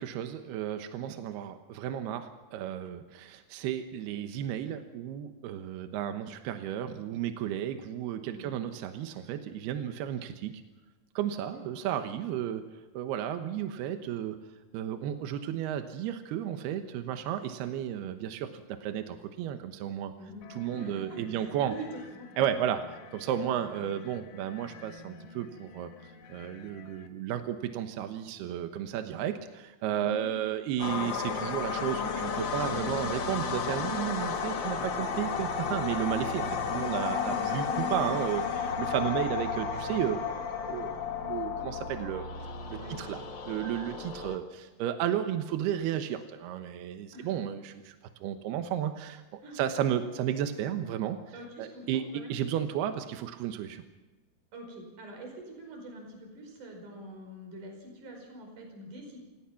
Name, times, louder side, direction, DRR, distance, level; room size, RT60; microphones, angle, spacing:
voice 1, 0.0-10.5 11.2-12.6 12.9-14.4 14.7-20.1 20.5-21.7 22.4-22.8 23.1-25.9 26.3-40.2 40.7-40.9 41.2-42.3 42.7-48.0 48.2-53.8, right 10 dB, 80° right, 7 dB, 3.1 m, -33 dB
voice 2, 11.5-11.8 20.2-21.9 22.1-22.6 30.0-30.3 37.2-38.1 42.8-43.0 47.1-47.3 49.4-49.6 51.3-52.3 54.5-59.2, right 1 dB, 50° right, 2 dB, 6.3 m, -45 dB
sound 1, 20.4-27.1, left 4 dB, 65° left, 2.6 m, -51 dB
sound 2, 30.8-44.4, left 6 dB, 85° left, 1.0 m, -33 dB
28.5 x 17.5 x 5.8 m, 1.1 s
omnidirectional pair, 4.6 m